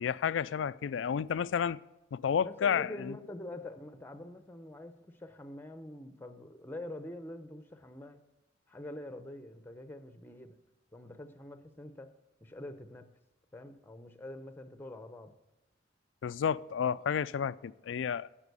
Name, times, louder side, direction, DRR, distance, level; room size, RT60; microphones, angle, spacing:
voice 1, 0.0-1.8 2.1-3.1 16.2-18.3, left 7 dB, 85° left, 0.4 m, -31 dB
voice 2, 2.4-8.2 8.7-10.6 10.9-13.1 13.5-15.4, left 1 dB, 10° left, 0.7 m, -45 dB
11.0 x 7.4 x 6.8 m
head